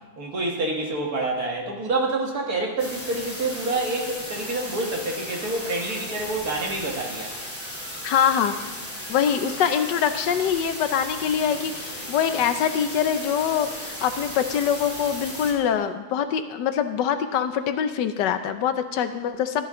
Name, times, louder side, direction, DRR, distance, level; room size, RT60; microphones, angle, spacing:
voice 1, 0.2-7.3, right 2 dB, 60° right, -1 dB, 2.3 m, -27 dB
sound 1, 2.8-15.5, equal, 5° left, 3.0 m, -36 dB
voice 2, 8.0-8.6 9.1-19.7, left 8 dB, 85° left, 9 dB, 1.4 m, -24 dB
13.5 x 11.0 x 3.8 m, 1.1 s
omnidirectional pair, 1.8 m